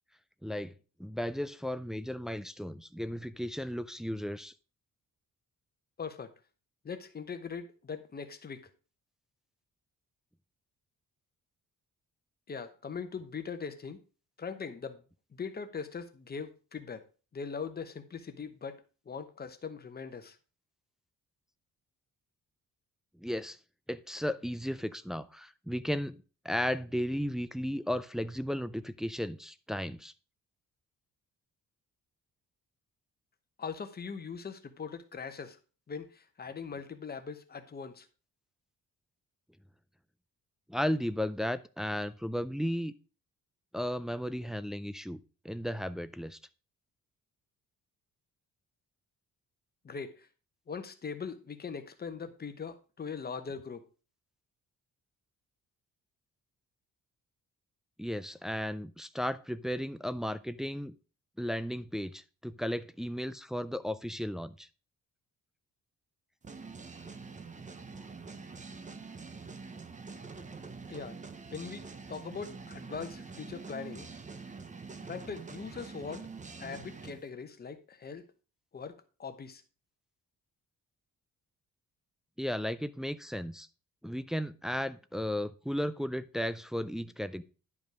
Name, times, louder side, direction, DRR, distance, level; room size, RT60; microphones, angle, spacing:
voice 1, 0.4-0.7 1.0-4.5 23.2-23.6 23.9-30.1 40.7-42.9 43.7-46.4 58.0-60.9 61.4-64.7 82.4-83.7 84.0-87.4, equal, ahead, 0.3 m, -35 dB
voice 2, 6.0-6.3 6.8-8.7 12.5-14.0 14.4-15.0 15.3-17.0 17.3-20.4 33.6-35.6 35.9-38.1 49.8-50.3 50.7-53.9 70.9-71.2 71.5-71.8 72.1-74.1 75.0-76.3 76.6-78.3 78.7-79.6, left 5 dB, 30° left, 1.0 m, -41 dB
sound 1, 66.4-77.2, right 4 dB, 25° right, 0.8 m, -45 dB
11.0 x 5.3 x 4.8 m
cardioid pair, 155°, 33 cm